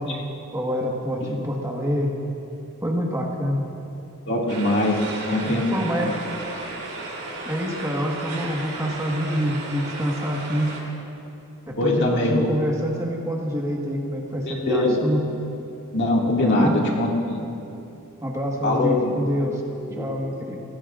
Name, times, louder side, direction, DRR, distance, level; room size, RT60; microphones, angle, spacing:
voice 1, 0.0-2.1 2.8-3.6 5.4-6.2 7.5-10.7 11.7-15.2 16.4-16.8 18.2-19.6 19.9-20.6, equal, 15° right, -1 dB, 1.5 m, -26 dB
voice 2, 4.3-5.0 5.3-6.2 11.8-12.6 14.5-15.0 15.9-17.4 18.6-19.1 20.0-20.2, left 1 dB, 55° left, -2 dB, 2.2 m, -22 dB
sound 1, 4.5-10.8, right 2 dB, 85° right, 3.3 m, -34 dB
25.5 x 17.0 x 2.5 m, 2.8 s
head